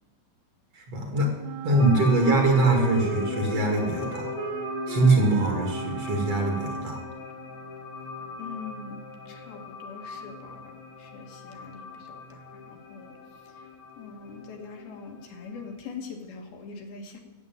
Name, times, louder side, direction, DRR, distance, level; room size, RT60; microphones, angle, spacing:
voice 1, 0.7-1.3 1.6-4.3 4.9-7.0, right 2 dB, 45° right, 2 dB, 2.7 m, -23 dB
Wind instrument woodwind instrument, 1.4-7.2, right 9 dB, 85° right, 1.6 m, -36 dB
sound 1, 1.8-15.8, left 5 dB, 55° left, 1.7 m, -38 dB
voice 2, 8.4-13.1 13.5-13.7 14.0-17.2, left 5 dB, 80° left, 2 dB, 3.6 m, -43 dB
13.0 x 8.1 x 9.1 m, 1.1 s
omnidirectional pair, 4.3 m